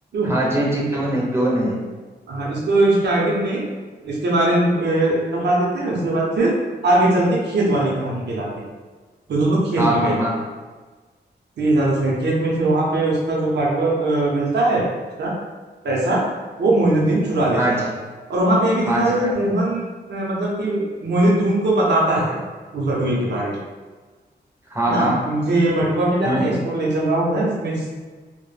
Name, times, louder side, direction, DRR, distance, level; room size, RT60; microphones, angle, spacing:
voice 1, 0.2-1.8 9.8-10.4 17.5-17.8 18.9-19.3 24.7-25.2 26.2-26.5, right 1 dB, 15° right, -5 dB, 0.5 m, -22 dB
voice 2, 2.3-3.6 4.0-6.5 6.8-8.5 9.3-10.2 11.6-14.9 15.2-15.3 15.8-16.2 16.6-17.8 18.3-19.8 20.1-22.4 22.7-23.6 24.9-27.9, right 1 dB, 75° right, -4 dB, 0.6 m, -20 dB
2.1 x 2.1 x 3.1 m, 1.4 s
wide cardioid pair, 115°, 18 cm